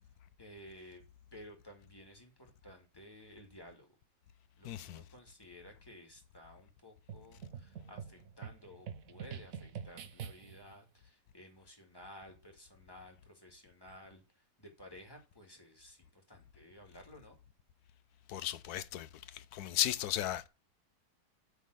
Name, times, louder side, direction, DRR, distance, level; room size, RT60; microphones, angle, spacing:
voice 1, 0.4-1.0 1.3-3.9 4.6-17.4, equal, 15° left, 1.9 m, -55 dB
voice 2, 4.6-5.0 18.3-19.1 19.3-20.5, left 12 dB, 70° left, 1.1 m, -35 dB
sound 1, 7.1-10.7, right 8 dB, 60° right, 1.1 m, -46 dB
8.2 x 3.8 x 6.4 m
omnidirectional pair, 1.8 m